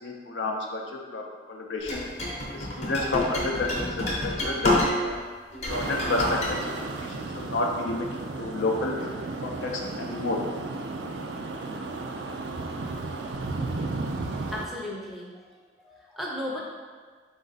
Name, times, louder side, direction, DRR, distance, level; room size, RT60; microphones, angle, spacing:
voice 1, 0.0-2.0 2.5-5.2 5.7-6.6 7.3-8.1 8.4-9.0 9.4-10.4, left 2 dB, 80° left, 1 dB, 0.5 m, -30 dB
sound 1, 1.9-5.2 5.5-6.5, left 1 dB, 35° left, 0.7 m, -28 dB
sound 2, 5.7-14.7, right 3 dB, 70° right, 0.4 m, -34 dB
voice 2, 14.5-15.3 15.8-16.6, left 1 dB, ahead, -4 dB, 0.5 m, -35 dB
4.1 x 2.5 x 3.9 m, 1.5 s
head